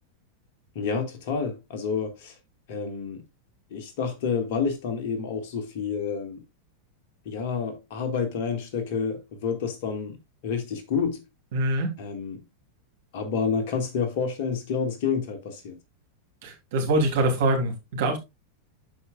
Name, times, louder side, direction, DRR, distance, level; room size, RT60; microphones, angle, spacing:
voice 1, 0.8-2.3 2.7-3.2 3.7-6.4 7.3-10.2 10.4-11.2 12.0-12.4 13.1-15.8, left 6 dB, 50° left, 1.9 m, -29 dB
voice 2, 11.5-12.0 16.4-18.2, right 2 dB, 55° right, 3.1 m, -24 dB
12.5 x 5.1 x 2.4 m
figure-of-eight pair, 90°, 0 cm